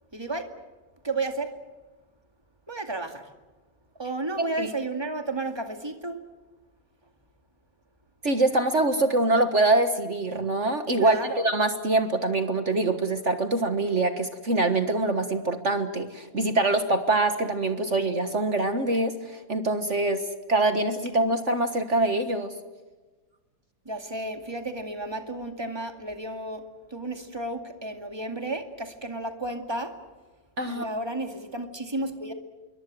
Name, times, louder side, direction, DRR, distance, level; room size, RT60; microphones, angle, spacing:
voice 1, 0.1-0.5 1.0-1.5 2.7-3.3 4.0-6.2 11.0-11.4 23.9-26.6 26.9-29.9 30.7-32.3, right 2 dB, 15° right, 6 dB, 2.2 m, -32 dB
voice 2, 4.4-4.7 8.2-22.5 30.6-30.9, right 2 dB, 40° right, 8 dB, 1.7 m, -24 dB
26.5 x 23.5 x 7.7 m, 1.2 s
omnidirectional pair, 2.0 m